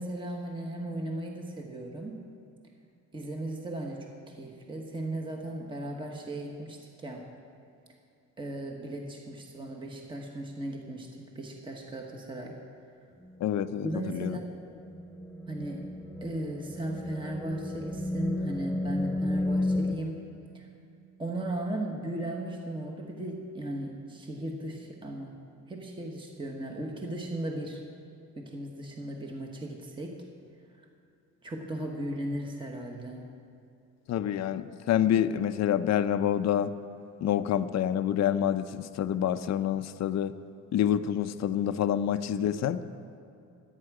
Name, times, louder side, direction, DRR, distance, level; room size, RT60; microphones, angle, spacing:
voice 1, 0.0-2.2 3.1-7.3 8.4-11.1 11.3-12.6 13.8-14.4 15.5-15.9 16.2-20.3 20.5-20.7 21.2-25.4 25.7-27.8 28.4-30.2 31.4-33.3, right 1 dB, 15° right, 1 dB, 1.3 m, -37 dB
sound 1, 13.2-20.0, left 1 dB, 5° left, 0.7 m, -33 dB
voice 2, 13.4-14.4 34.1-36.7 37.2-40.3 40.7-42.8, left 10 dB, 55° left, 11 dB, 0.6 m, -27 dB
24.5 x 9.2 x 4.8 m, 2.6 s
cardioid pair, 145°, 32 cm